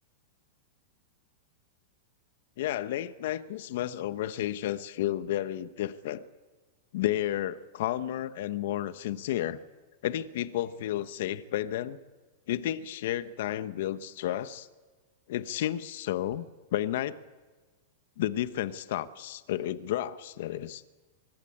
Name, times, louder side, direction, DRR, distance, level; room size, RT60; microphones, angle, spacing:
voice 1, 2.6-6.2 6.9-9.6 10.0-12.0 12.5-14.7 15.3-16.5 16.7-17.2 18.2-20.8, left 12 dB, 65° left, 14 dB, 1.0 m, -32 dB
24.5 x 20.5 x 8.7 m, 1.3 s
supercardioid pair, 140°, 0 cm